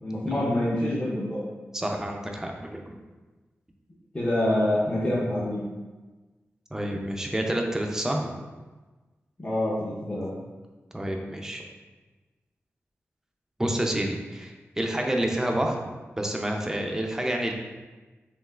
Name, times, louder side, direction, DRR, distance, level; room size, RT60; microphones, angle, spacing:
voice 1, 0.0-1.4 4.1-5.6 9.4-10.3, left 1 dB, 25° left, -8 dB, 0.8 m, -26 dB
voice 2, 1.7-2.8 6.7-8.3 10.9-11.6 13.6-15.8 16.2-17.5, right 1 dB, 10° right, 1 dB, 0.5 m, -28 dB
5.3 x 2.9 x 2.3 m, 1.2 s
wide cardioid pair, 95°, 5 cm